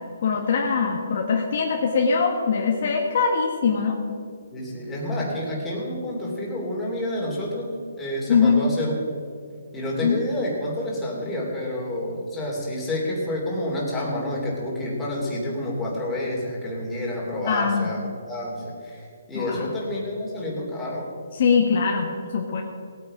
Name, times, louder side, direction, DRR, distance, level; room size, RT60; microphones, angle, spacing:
voice 1, 0.2-4.0 8.3-8.6 10.0-10.2 17.5-17.9 19.3-19.7 21.3-22.6, left 5 dB, 50° left, 0 dB, 1.5 m, -22 dB
voice 2, 4.5-7.7 8.0-9.0 9.7-18.0 18.3-21.1, left 1 dB, 10° left, -5 dB, 3.2 m, -29 dB
18.5 x 8.9 x 5.0 m, 2.4 s
hypercardioid pair, 160°, 0 cm